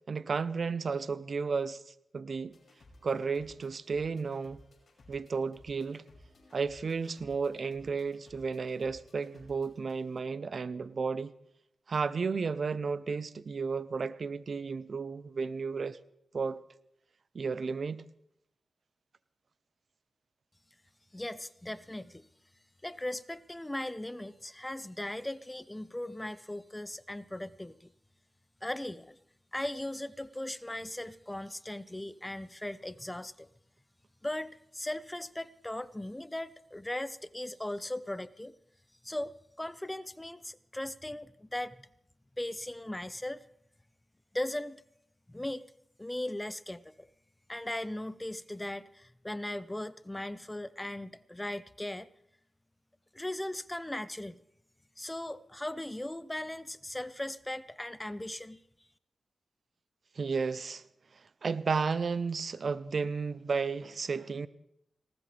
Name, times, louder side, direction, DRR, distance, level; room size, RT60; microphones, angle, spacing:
voice 1, 0.1-2.5 3.0-4.6 5.1-6.0 6.5-11.3 11.9-16.0 16.3-16.6 17.3-18.0 60.2-60.8 61.4-64.5, right 5 dB, 65° right, 15 dB, 0.8 m, -33 dB
sound 1, 2.5-10.2, left 1 dB, 55° left, 6.3 m, -59 dB
voice 2, 21.1-22.3 22.8-27.9 28.6-29.2 29.5-33.5 34.2-38.5 39.0-41.9 42.4-43.4 44.3-44.8 45.3-45.6 46.0-47.1 47.5-52.1 53.1-54.4 55.0-58.6, left 1 dB, 15° left, 15 dB, 0.8 m, -38 dB
19.5 x 18.5 x 3.4 m, 0.78 s
cardioid pair, 40°, 0 cm